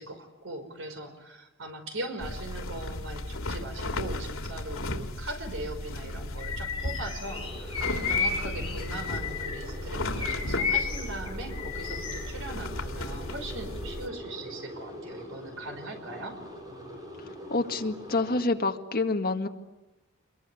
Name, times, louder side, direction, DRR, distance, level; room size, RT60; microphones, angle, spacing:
voice 1, 0.0-16.4, right 2 dB, 65° right, 7 dB, 5.3 m, -40 dB
sound 1, 2.2-14.1, left 1 dB, 80° left, 3.1 m, -35 dB
Bird vocalization bird call bird song, 6.4-9.7 10.1-12.3, left 6 dB, 25° left, 8.0 m, -33 dB
sound 2, 7.2-18.5, equal, 20° right, 7.7 m, -43 dB
voice 2, 17.5-19.5, left 3 dB, 45° left, 4 dB, 2.0 m, -27 dB
27.0 x 22.5 x 9.8 m, 1.1 s
head